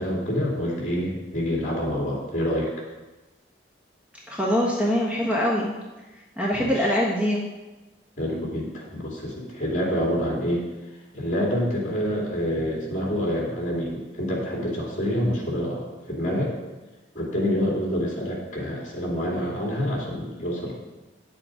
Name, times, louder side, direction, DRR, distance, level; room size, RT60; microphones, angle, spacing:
voice 1, 0.0-2.7 6.5-6.9 8.2-10.6 11.1-16.5 17.1-20.7, equal, 40° left, -3 dB, 2.9 m, -27 dB
voice 2, 4.3-5.7 6.4-7.4, equal, 5° right, -4 dB, 1.2 m, -23 dB
9.4 x 7.7 x 4.9 m, 1.1 s
head